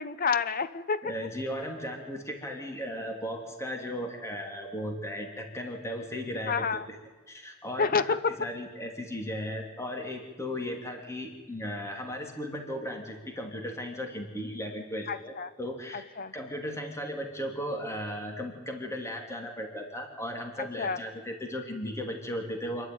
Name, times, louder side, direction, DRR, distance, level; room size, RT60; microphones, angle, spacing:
voice 1, 0.0-1.1 6.5-6.8 7.8-8.4 15.1-15.5 15.9-16.3 20.6-21.0, left 5 dB, 45° left, 14 dB, 0.9 m, -29 dB
voice 2, 1.0-6.8 7.3-16.0 16.3-22.9, equal, 15° left, 2 dB, 2.9 m, -36 dB
27.0 x 11.5 x 9.4 m, 1.4 s
head